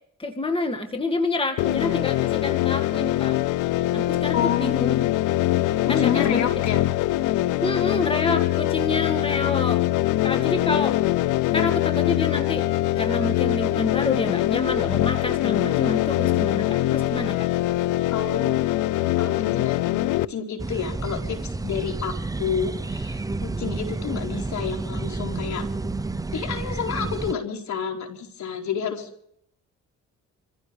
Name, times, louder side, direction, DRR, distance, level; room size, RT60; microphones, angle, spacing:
voice 1, 0.2-3.4 3.9-5.0 5.9-6.4 7.6-9.8 10.2-11.0 11.5-12.7 13.0-17.5, left 2 dB, 15° left, 5 dB, 2.1 m, -28 dB
sound 1, 1.6-20.2, left 15 dB, 85° left, 0.6 m, -23 dB
voice 2, 4.3-5.2 5.8-6.8 7.3-7.5 18.1-18.7 19.2-25.7 26.3-29.1, left 7 dB, 65° left, 2 dB, 4.5 m, -29 dB
sound 2, 20.6-27.3, right 3 dB, 10° right, 0.6 m, -30 dB
27.5 x 15.5 x 3.4 m, 0.68 s
cardioid pair, 90°, 30 cm